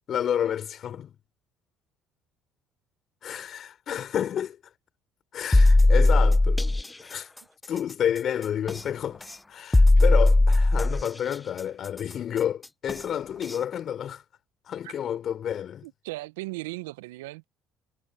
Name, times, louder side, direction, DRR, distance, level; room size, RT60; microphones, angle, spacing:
voice 1, 0.1-1.2 3.2-4.7 5.3-6.7 7.0-7.3 7.7-14.2 14.6-15.9, left 9 dB, 50° left, 4.7 m, -30 dB
sound 1, 5.5-6.8 8.7-8.8 9.7-11.1 12.9-13.0 13.5-13.6, left 2 dB, 15° left, 0.3 m, -18 dB
voice 2, 15.8-17.4, right 21 dB, 80° right, 1.2 m, -37 dB
hypercardioid pair, 60°, 0 cm